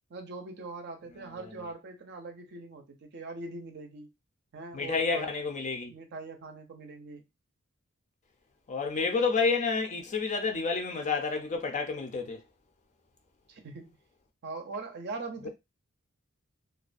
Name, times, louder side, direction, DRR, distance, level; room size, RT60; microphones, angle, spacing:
voice 1, 0.1-4.1 4.5-5.3 5.9-7.2 13.5-14.0 14.4-15.5, right 3 dB, 50° right, 0.5 m, -41 dB
voice 2, 4.7-5.9 8.7-12.4, left 4 dB, 35° left, 0.4 m, -29 dB
2.4 x 2.1 x 2.5 m
head